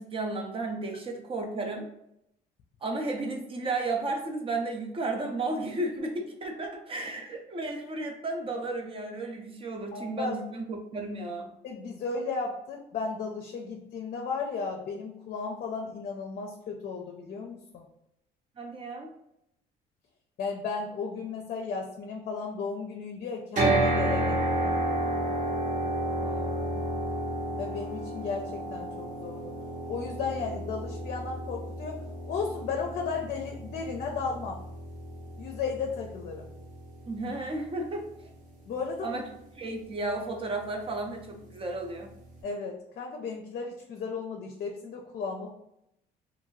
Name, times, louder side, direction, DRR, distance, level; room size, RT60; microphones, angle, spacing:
voice 1, 0.0-1.9 2.8-11.5 18.6-19.1 26.2-26.8 37.1-38.0 39.0-39.3 39.6-42.1, right 2 dB, 35° right, 2 dB, 0.6 m, -33 dB
voice 2, 9.9-10.4 11.6-17.9 20.4-25.0 27.6-29.5 29.9-32.0 32.3-34.6 35.4-36.5 38.7-39.2 42.4-45.5, left 4 dB, 55° left, 1 dB, 0.5 m, -35 dB
sound 1, 23.6-37.7, right 1 dB, 50° right, 1.1 m, -31 dB
2.6 x 2.5 x 3.0 m, 0.80 s
cardioid pair, 110°, 17 cm